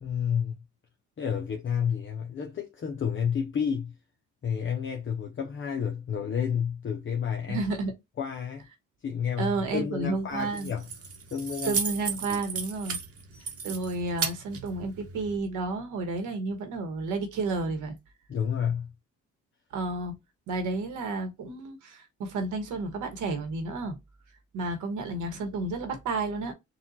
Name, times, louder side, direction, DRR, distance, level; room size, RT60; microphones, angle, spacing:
voice 1, 0.0-0.5 1.2-3.9 4.4-7.6 8.2-8.7 9.0-10.9 11.3-11.8 12.3-12.4 18.3-18.9, left 7 dB, 40° left, 0.8 m, -30 dB
voice 2, 7.5-7.9 9.4-10.7 11.6-13.0 13.6-18.0 19.7-20.2 20.5-24.0 24.5-26.5, right 3 dB, 85° right, 1.3 m, -31 dB
Keys jangling, 10.3-15.4, right 5 dB, 50° right, 1.0 m, -35 dB
4.2 x 2.4 x 4.1 m
cardioid pair, 90°, 30 cm